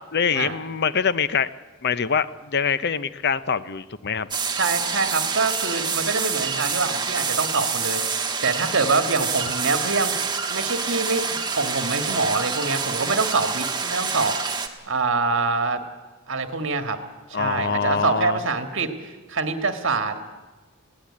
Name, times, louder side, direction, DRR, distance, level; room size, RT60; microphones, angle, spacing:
voice 1, 0.1-1.5 1.8-4.3 17.3-18.4, left 6 dB, 50° left, 15 dB, 0.7 m, -24 dB
sound 1, 4.3-14.7, right 5 dB, 20° right, 1.5 m, -27 dB
voice 2, 4.5-10.2 10.5-15.8 16.3-17.0 17.3-20.2, right 4 dB, 60° right, 7 dB, 1.8 m, -25 dB
21.0 x 17.0 x 8.6 m, 1.2 s
head